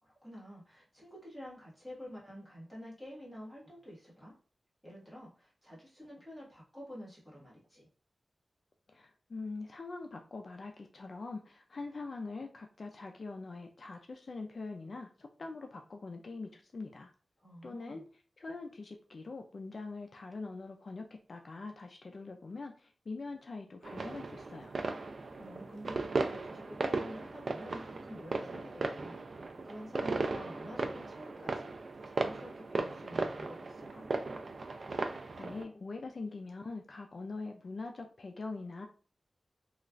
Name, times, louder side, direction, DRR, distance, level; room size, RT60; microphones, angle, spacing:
voice 1, 0.0-4.3 4.8-7.9 17.4-18.0 25.4-34.1, equal, 5° right, -6 dB, 1.4 m, -49 dB
voice 2, 8.9-17.1 17.6-18.0 18.4-24.8 35.4-38.9, left 3 dB, 50° left, 3 dB, 0.3 m, -43 dB
sound 1, 23.8-35.6, right 3 dB, 55° right, 0.3 m, -37 dB
3.1 x 2.3 x 2.4 m, 0.40 s
wide cardioid pair, 130°, 0 cm